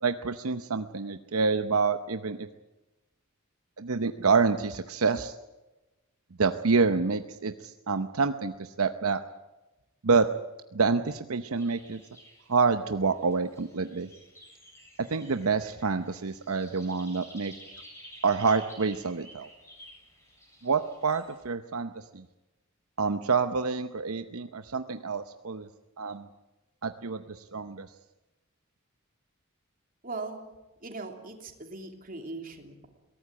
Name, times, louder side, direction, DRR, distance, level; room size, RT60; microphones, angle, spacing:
voice 1, 0.0-2.5 3.8-5.4 6.4-9.2 10.0-10.3 10.7-12.0 12.5-14.1 15.1-17.5 18.2-19.5 20.6-22.3 23.0-25.7 26.0-26.3 26.8-27.9, right 4 dB, 75° right, 9 dB, 0.8 m, -27 dB
sound 1, 11.6-21.4, equal, 15° left, 8.0 m, -52 dB
voice 2, 30.0-30.4 30.8-32.9, right 3 dB, 40° right, 4 dB, 3.1 m, -39 dB
22.5 x 18.0 x 8.7 m, 1.1 s
head